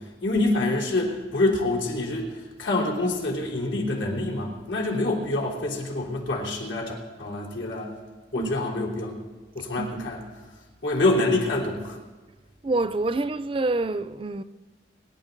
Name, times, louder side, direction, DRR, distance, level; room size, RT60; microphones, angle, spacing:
voice 1, 0.2-7.9 8.3-9.2 9.5-10.2 10.8-12.0, left 2 dB, 90° left, 3.4 m, -26 dB
voice 2, 9.8-10.1 12.6-14.4, right 2 dB, 30° right, 0.4 m, -27 dB
25.0 x 11.5 x 3.9 m
head